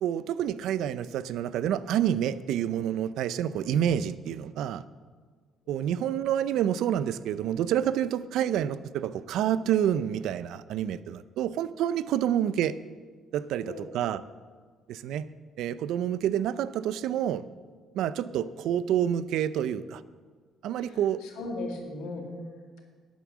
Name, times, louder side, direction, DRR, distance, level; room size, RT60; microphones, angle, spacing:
voice 1, 0.0-4.8 5.7-12.8 13.3-14.2 14.9-15.2 15.6-17.4 17.9-20.0 20.6-21.2, right 10 dB, 80° right, 15 dB, 0.5 m, -28 dB
voice 2, 21.2-22.8, left 2 dB, 90° left, 1 dB, 2.4 m, -37 dB
11.0 x 9.2 x 7.3 m, 1.5 s
supercardioid pair, 80°, 0 cm